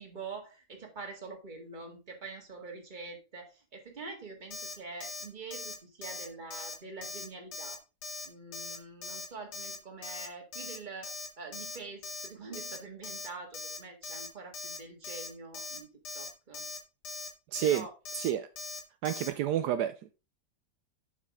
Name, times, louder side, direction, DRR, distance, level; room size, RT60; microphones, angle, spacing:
voice 1, 0.0-7.8 8.3-16.6 17.6-17.9, right 4 dB, 30° right, 3 dB, 1.9 m, -45 dB
Alarm, 4.5-4.7 5.0-5.2 5.5-5.7 6.0-6.3 6.5-6.7 7.0-7.2 7.5-7.8 8.0-8.3 8.5-8.8 9.0-9.3 9.5-9.8 10.0-10.3 10.5-10.8 11.0-11.3 11.5-11.8 12.0-12.3 12.5-12.8 13.0-13.3 13.5-13.8 14.0-14.3 14.5-14.8 15.0-15.3 15.5-15.8 16.0-16.3 16.5-16.8 17.0-17.3 17.5-17.8 18.1-18.3 18.6-18.8 19.0-19.3, left 3 dB, 75° left, 2.1 m, -40 dB
voice 2, 17.5-17.9 18.1-18.5 19.0-20.1, right 11 dB, 80° right, 10 dB, 1.2 m, -29 dB
7.3 x 6.6 x 3.5 m, 0.29 s
omnidirectional pair, 1.8 m